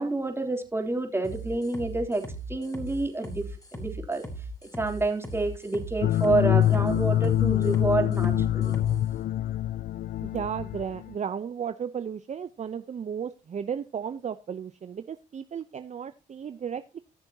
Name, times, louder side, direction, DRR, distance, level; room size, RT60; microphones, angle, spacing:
voice 1, 0.0-2.2 2.5-4.2 4.8-8.7, right 2 dB, 15° right, 3 dB, 3.3 m, -28 dB
sound 1, 1.2-9.0, right 2 dB, 20° left, 4.4 m, -39 dB
sound 2, 6.0-11.1, left 12 dB, 55° left, 0.4 m, -25 dB
voice 2, 10.2-17.0, right 7 dB, 45° right, 12 dB, 0.7 m, -34 dB
17.5 x 6.8 x 2.8 m, 0.31 s
supercardioid pair, 55°, 17 cm